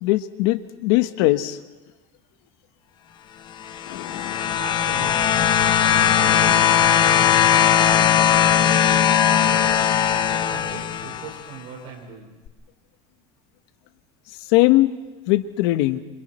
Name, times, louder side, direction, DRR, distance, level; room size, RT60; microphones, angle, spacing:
voice 1, 0.0-1.6 3.9-4.5 14.5-14.9 15.3-16.0, left 18 dB, 75° left, 11 dB, 1.2 m, -20 dB
sound 1, 3.6-11.4 12.5-12.6, left 9 dB, 35° left, 1.0 m, -19 dB
voice 2, 4.5-5.4 5.8-10.0 10.4-12.4, right 5 dB, 60° right, 1 dB, 4.9 m, -40 dB
27.5 x 26.0 x 4.4 m, 1.1 s
supercardioid pair, 140°, 13 cm